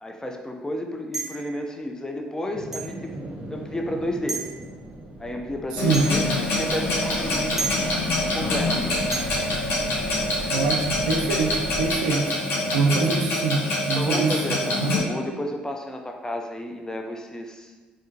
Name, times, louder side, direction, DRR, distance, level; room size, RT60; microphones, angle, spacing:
voice 1, 0.0-3.1 3.5-4.4 5.2-7.9 8.3-9.1 12.9-13.2 13.9-17.7, left 1 dB, 15° left, 3 dB, 0.5 m, -32 dB
sound 1, 1.1-1.5 2.7-2.9 4.3-4.5 5.9-6.2 7.6-7.8 9.1-9.3, right 4 dB, 10° right, 0.9 m, -30 dB
sound 2, 2.5-12.0, right 2 dB, 35° right, 1.0 m, -38 dB
voice 2, 5.7-6.1 10.5-12.4 12.7-15.0, right 4 dB, 80° right, 2 dB, 0.3 m, -24 dB
Clock, 5.8-15.0, left 1 dB, 65° left, 0.8 m, -26 dB
3.6 x 3.2 x 2.7 m, 1.3 s
hypercardioid pair, 50°, 4 cm